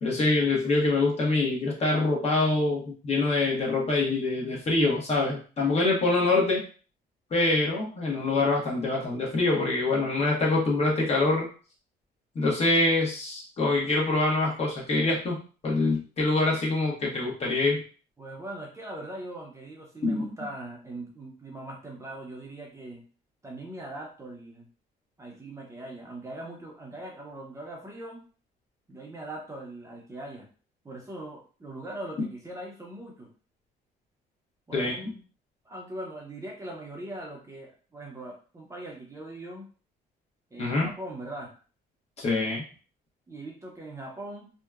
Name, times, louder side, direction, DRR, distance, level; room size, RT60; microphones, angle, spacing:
voice 1, 0.0-6.6 7.3-11.5 12.3-17.8 20.0-20.4 34.7-34.9 40.6-40.9 42.2-42.6, left 2 dB, 40° left, -2 dB, 1.0 m, -25 dB
voice 2, 18.2-23.0 23.4-24.7 25.2-28.2 28.9-30.5 30.8-33.3 34.7-35.2 35.6-39.6 40.5-41.5 43.3-44.5, right 1 dB, 15° right, -1 dB, 0.6 m, -41 dB
2.8 x 2.1 x 2.3 m, 0.38 s
cardioid pair, 110°, 17 cm